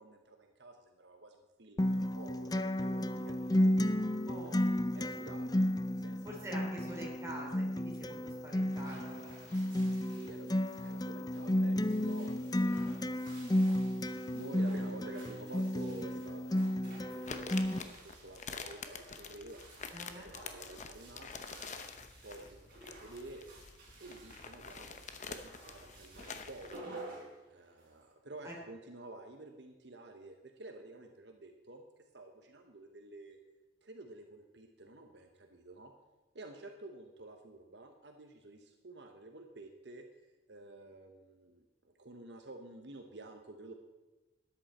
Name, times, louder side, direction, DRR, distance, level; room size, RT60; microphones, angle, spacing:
voice 1, 0.0-4.3 4.9-5.6 6.0-7.0 10.1-10.5 10.8-13.0 13.7-19.7 20.0-21.7 22.2-23.6 24.0-27.0 27.5-31.8 32.1-33.4 33.8-35.9 36.3-40.0 40.5-43.7, right 2 dB, 70° right, 4 dB, 1.1 m, -51 dB
Acoustic guitar, 1.8-17.8, left 1 dB, 20° left, 0.5 m, -33 dB
voice 2, 4.2-4.6 6.2-9.2 19.9-20.3 26.8-26.9 28.4-28.6, right 1 dB, 15° right, -2 dB, 3.3 m, -46 dB
sound 1, 8.5-28.1, right 2 dB, 50° right, 4.3 m, -54 dB
sound 2, 17.3-26.8, left 5 dB, 40° left, 0.8 m, -47 dB
13.0 x 10.5 x 4.3 m, 1.2 s
head